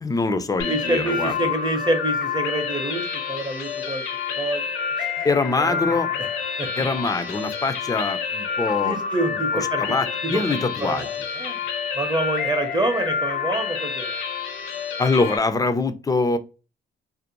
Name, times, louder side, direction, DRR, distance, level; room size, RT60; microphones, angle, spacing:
voice 1, 0.0-1.3 5.2-6.1 6.8-9.0 9.5-11.1 15.0-16.4, left 3 dB, 20° left, 10 dB, 0.4 m, -23 dB
sound 1, 0.6-15.4, left 6 dB, 90° left, 0.5 m, -28 dB
voice 2, 0.7-4.0 4.4-4.6 5.0-5.3 5.6-6.0 6.6-6.7 8.8-9.8 10.8-11.1 11.4-11.6 12.0-14.1, right 2 dB, 20° right, 6 dB, 0.6 m, -26 dB
2.5 x 2.0 x 2.8 m, 0.33 s
cardioid pair, 90°, 20 cm